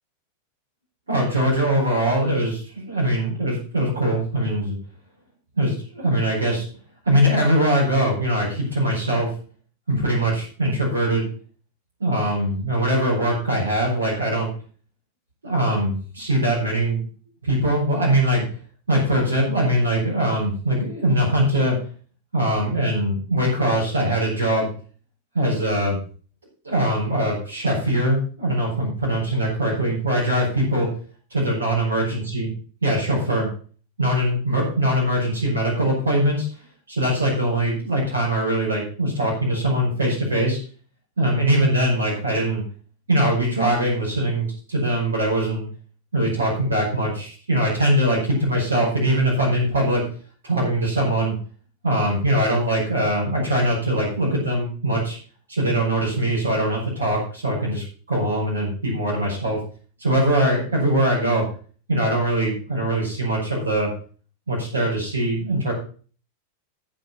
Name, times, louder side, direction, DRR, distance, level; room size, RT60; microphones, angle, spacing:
voice 1, 1.1-4.8 5.6-6.6 7.1-9.3 9.9-11.3 12.0-14.5 15.4-17.0 17.4-18.5 18.9-21.7 22.3-24.7 25.3-26.0 26.6-30.9 31.3-32.5 32.8-33.5 34.0-36.5 36.9-40.6 41.2-42.6 43.1-45.6 46.1-50.0 50.4-51.3 51.8-55.2 55.5-59.6 60.0-61.4 61.9-63.9 64.5-65.7, right 1 dB, 70° right, -3 dB, 5.3 m, -22 dB
14.0 x 5.5 x 5.4 m, 0.40 s
figure-of-eight pair, 90°, 0 cm